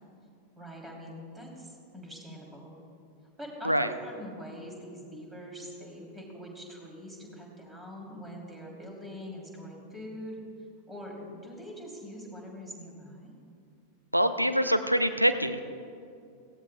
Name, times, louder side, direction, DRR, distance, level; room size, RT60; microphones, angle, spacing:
voice 1, 0.5-2.8 3.4-10.4 10.9-13.3, equal, 10° right, -1 dB, 3.3 m, -43 dB
voice 2, 14.1-15.6, equal, 90° right, 10 dB, 0.5 m, -25 dB
18.0 x 16.5 x 2.3 m, 2.4 s
figure-of-eight pair, 90°, 0 cm